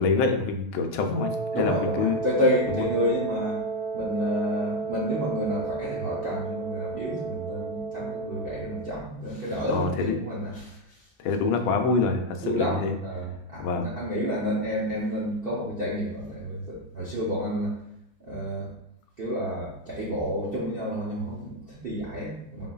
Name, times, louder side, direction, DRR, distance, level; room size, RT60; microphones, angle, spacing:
voice 1, 0.0-2.2 2.7-2.8 9.1-9.2 9.7-10.2 11.2-13.0 13.6-13.9, left 4 dB, 85° left, 5 dB, 1.4 m, -26 dB
Wind instrument woodwind instrument, 1.1-9.0, right 5 dB, 40° right, 1.5 m, -33 dB
voice 2, 1.5-3.6 3.9-11.0 12.4-17.8 18.2-18.7 19.2-22.7, equal, 65° right, -7 dB, 0.5 m, -30 dB
3.8 x 3.8 x 2.3 m, 0.77 s
omnidirectional pair, 2.2 m